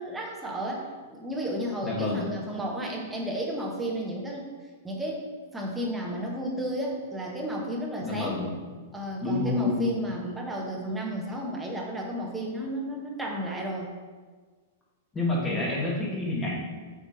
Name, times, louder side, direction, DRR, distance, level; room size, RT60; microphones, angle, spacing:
voice 1, 0.0-4.5 4.8-8.4 8.9-13.9, right 1 dB, 5° right, -2 dB, 1.3 m, -33 dB
voice 2, 1.8-2.3 8.0-8.6 9.2-9.9 15.1-16.6, left 2 dB, 15° left, -4 dB, 1.7 m, -28 dB
8.0 x 3.6 x 4.2 m, 1.4 s
figure-of-eight pair, 100°, 0 cm